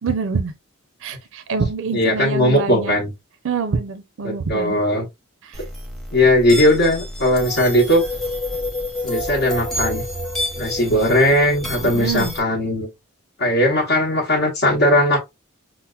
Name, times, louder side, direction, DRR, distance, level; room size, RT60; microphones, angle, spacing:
voice 1, 0.0-0.5 1.0-3.0 3.4-4.8 5.4-5.6 11.8-12.3, right 4 dB, 60° right, 0.5 m, -25 dB
voice 2, 1.9-3.1 4.2-5.1 6.1-8.0 9.0-10.0 10.6-12.9 13.4-15.2, left 1 dB, 55° left, 0.8 m, -18 dB
sound 1, 5.5-12.4, left 1 dB, ahead, 0.7 m, -29 dB
5.6 x 2.0 x 2.3 m
head